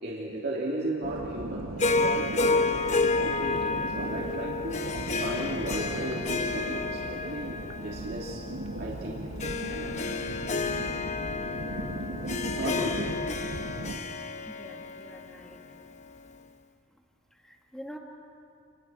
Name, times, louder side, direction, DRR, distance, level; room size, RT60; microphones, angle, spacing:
voice 1, 0.0-4.8 5.1-8.4 8.8-10.0 12.6-13.1, right 1 dB, 50° right, -5 dB, 2.8 m, -36 dB
sound 1, 1.0-14.0, right 1 dB, 85° right, 1.7 m, -37 dB
Harp, 1.8-16.2, left 3 dB, 35° left, 0.8 m, -31 dB
voice 2, 14.5-15.6 17.3-18.0, equal, 5° left, 1 dB, 2.0 m, -46 dB
27.0 x 21.0 x 6.3 m, 2.6 s
head